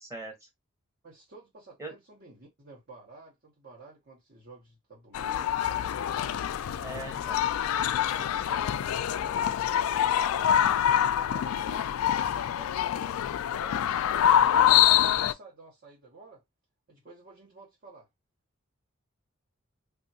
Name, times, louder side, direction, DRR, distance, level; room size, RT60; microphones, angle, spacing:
voice 1, 0.0-0.5 1.8-1.9 6.8-7.4, right 2 dB, 15° right, 1.2 m, -40 dB
voice 2, 1.0-5.8 6.5-10.8 11.3-12.0 12.5-16.4 16.9-18.1, right 3 dB, 50° right, 1.2 m, -52 dB
sound 1, 5.1-15.3, left 10 dB, 85° left, 0.3 m, -25 dB
3.4 x 2.7 x 2.7 m
head